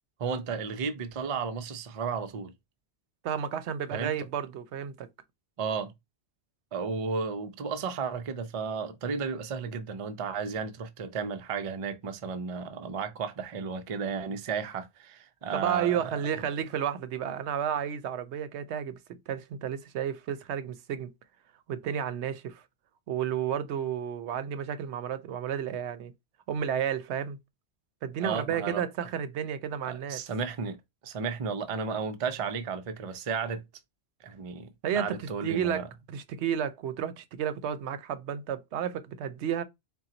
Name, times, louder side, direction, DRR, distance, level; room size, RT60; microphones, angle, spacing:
voice 1, 0.2-2.5 3.9-4.1 5.6-5.9 6.7-16.2 28.2-28.8 29.8-30.8 31.0-33.6 34.2-35.9, right 5 dB, 40° right, 0.5 m, -33 dB
voice 2, 3.2-5.1 15.5-19.0 19.3-21.1 21.7-22.6 23.1-26.1 26.5-27.4 28.0-30.2 34.8-35.8 36.1-39.6, right 9 dB, 80° right, 0.9 m, -32 dB
4.2 x 2.2 x 3.8 m
omnidirectional pair, 1.1 m